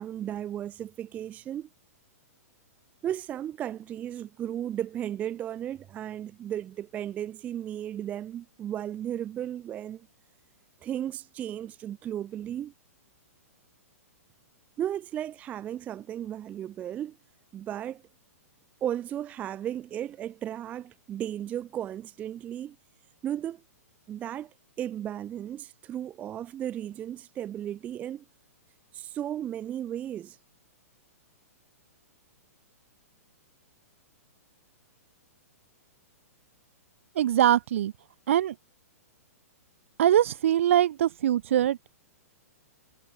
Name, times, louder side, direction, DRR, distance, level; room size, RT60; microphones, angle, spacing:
voice 1, 0.0-1.7 3.0-10.1 10.8-12.7 14.8-17.2 17.5-18.0 18.8-22.8 23.2-23.6 24.1-28.2 28.9-30.4, right 10 dB, 15° right, 0.3 m, -35 dB
voice 2, 37.2-37.9 38.3-38.5 40.0-41.9, right 11 dB, 55° right, 0.8 m, -23 dB
figure-of-eight pair, 110°, 8 cm